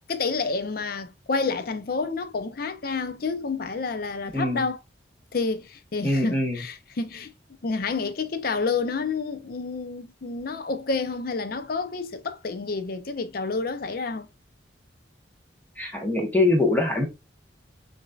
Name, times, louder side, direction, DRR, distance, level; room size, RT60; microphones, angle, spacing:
voice 1, 0.1-4.8 5.3-7.3 7.6-14.3, left 4 dB, 55° left, 0.5 m, -29 dB
voice 2, 6.0-6.6 15.8-17.1, left 2 dB, 10° left, 1.0 m, -23 dB
6.2 x 2.7 x 2.3 m
head